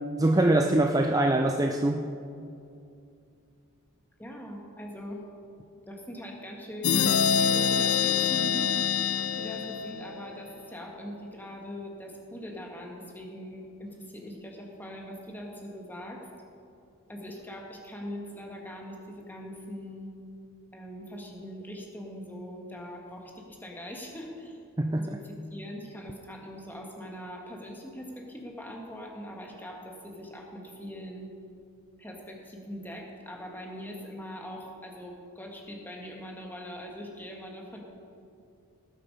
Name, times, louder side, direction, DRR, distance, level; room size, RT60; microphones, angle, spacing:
voice 1, 0.2-2.1 24.8-25.2, right 1 dB, 15° right, 4 dB, 0.4 m, -23 dB
voice 2, 4.2-5.2 5.8-16.3 17.1-20.1 20.7-24.6 24.9-31.3 32.0-37.8, equal, 10° left, 0 dB, 1.6 m, -41 dB
sound 1, 6.8-10.4, left 7 dB, 70° left, 0.5 m, -25 dB
18.0 x 7.7 x 5.3 m, 2.5 s
head